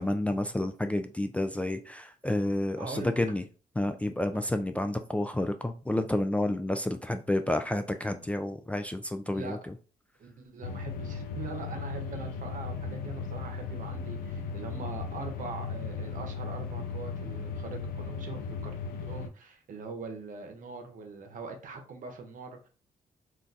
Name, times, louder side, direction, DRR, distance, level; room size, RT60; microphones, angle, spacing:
voice 1, 0.0-3.4 3.8-9.6, left 1 dB, 10° left, 7 dB, 0.3 m, -30 dB
voice 2, 2.8-3.1 9.3-9.6 10.2-18.7 19.1-22.7, right 4 dB, 65° right, 4 dB, 0.8 m, -42 dB
sound 1, 10.6-19.3, left 5 dB, 80° left, 0.4 m, -37 dB
2.5 x 2.2 x 3.9 m, 0.35 s
cardioid pair, 80°, 15 cm